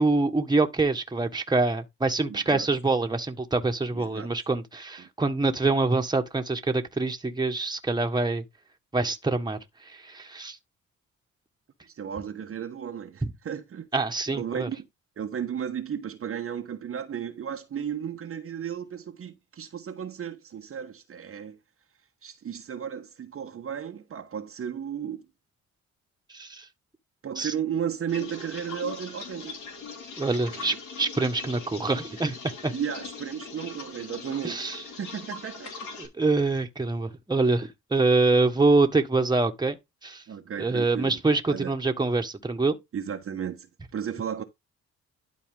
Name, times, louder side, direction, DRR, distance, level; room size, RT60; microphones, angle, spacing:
voice 1, 0.0-8.4 8.9-9.6 10.0-10.6 13.2-13.3 13.9-14.7 26.3-26.7 27.4-27.5 30.2-32.4 32.6-32.7 34.4-34.8 36.0-39.8 40.0-40.2 40.6-42.8, right 3 dB, 15° right, 1.6 m, -25 dB
voice 2, 2.3-2.7 3.9-4.3 5.0-5.1 11.9-13.9 14.3-14.9 15.2-21.6 22.2-25.2 27.2-29.6 30.4-30.8 32.7-34.6 35.0-35.7 40.3-41.2 41.5-41.7 42.9-43.7 43.9-44.4, right 8 dB, 45° right, 1.2 m, -34 dB
sound 1, 28.1-36.1, left 4 dB, 75° left, 3.1 m, -41 dB
12.0 x 4.3 x 3.8 m
cardioid pair, 90°, 30 cm